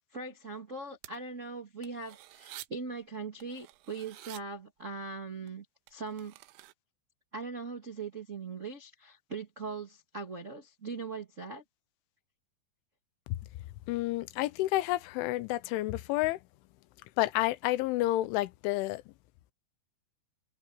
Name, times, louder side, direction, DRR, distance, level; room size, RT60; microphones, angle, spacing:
voice 1, 0.1-6.3 7.3-11.6, right 4 dB, 45° right, 1.0 m, -40 dB
sound 1, 1.0-1.2 1.8-2.7 3.4-4.4 5.5-5.6 5.9-6.7, right 17 dB, 90° right, 3.2 m, -49 dB
voice 2, 13.9-16.4 17.2-19.0, left 17 dB, 85° left, 3.2 m, -30 dB
open air
omnidirectional pair, 5.5 m